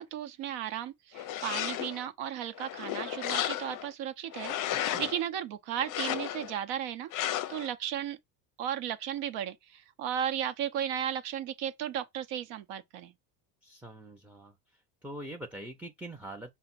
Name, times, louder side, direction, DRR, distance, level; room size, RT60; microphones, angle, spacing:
voice 1, 0.0-8.2 8.6-13.1, right 10 dB, 60° right, 1.0 m, -35 dB
sound 1, 1.1-2.0 2.5-3.9 4.3-5.2 5.8-6.6 7.1-7.7, left 12 dB, 40° left, 0.5 m, -34 dB
voice 2, 13.6-14.5 15.0-16.5, right 1 dB, 5° right, 0.6 m, -43 dB
5.6 x 2.2 x 4.1 m
supercardioid pair, 110°, 50 cm